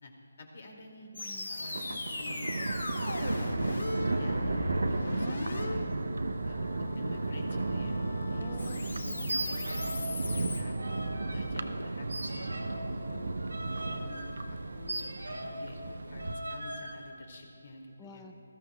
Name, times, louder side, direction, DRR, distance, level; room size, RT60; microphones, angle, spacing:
voice 1, 0.0-1.1 1.5-3.7 3.9-5.9 6.4-6.7 6.9-8.0 8.3-8.8 9.1-10.8 11.3-12.4 13.1-13.4 13.7-18.3, left 2 dB, 55° left, 2 dB, 2.2 m, -49 dB
sound 1, 1.1-10.6, left 2 dB, 75° left, 1.7 m, -38 dB
voice 2, 1.1-1.5 1.9-2.0 8.4-9.3 18.0-18.3, left 3 dB, 15° left, 4 dB, 0.7 m, -50 dB
Thunder, 1.6-16.3, right 2 dB, 70° right, 0.7 m, -34 dB
sound 2, 9.2-10.1 10.4-11.4 12.1-15.7 16.2-16.9, right 1 dB, 90° right, 2.3 m, -39 dB
20.0 x 14.0 x 2.2 m, 2.9 s
figure-of-eight pair, 155°, 0 cm